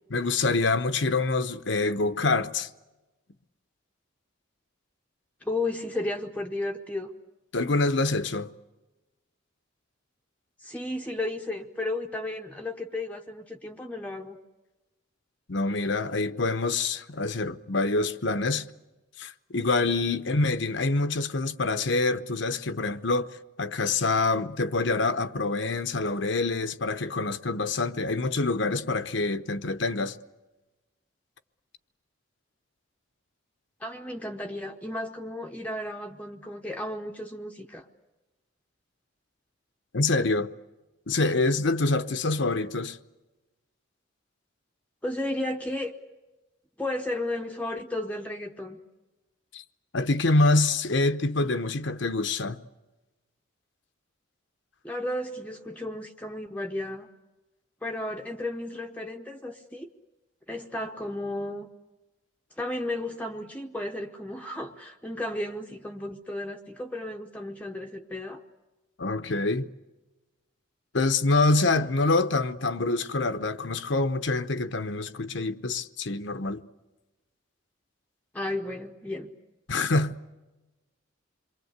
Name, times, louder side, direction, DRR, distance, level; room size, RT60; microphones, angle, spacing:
voice 1, 0.1-2.7 7.5-8.5 15.5-18.7 19.2-23.3 23.6-30.2 39.9-40.5 41.1-43.0 49.5-49.6 49.9-52.6 69.0-69.7 70.9-76.6 79.7-80.2, left 3 dB, 65° left, 0.9 m, -26 dB
voice 2, 5.4-7.1 10.6-14.4 33.8-37.9 45.0-45.9 46.8-48.8 54.8-57.1 57.8-59.9 60.5-61.7 62.6-68.4 78.3-79.3, left 1 dB, 5° left, 0.9 m, -33 dB
27.5 x 23.0 x 8.1 m
head